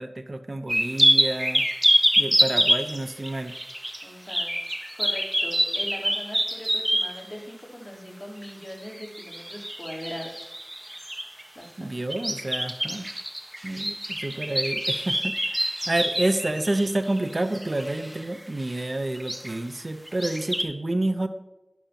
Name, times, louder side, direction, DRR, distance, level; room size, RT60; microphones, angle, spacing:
voice 1, 0.0-1.6 2.2-3.5 11.8-13.1 13.6-21.3, right 2 dB, 55° right, 8 dB, 0.9 m, -29 dB
sound 1, 0.7-7.2 8.9-11.4 12.1-18.2 18.6-18.8 19.1-19.5 20.1-20.6, equal, 20° right, 1.4 m, -26 dB
voice 2, 4.0-10.6 11.5-11.9, equal, 10° left, -3 dB, 4.0 m, -40 dB
12.0 x 11.5 x 3.0 m, 0.98 s
wide cardioid pair, 45°, 0 cm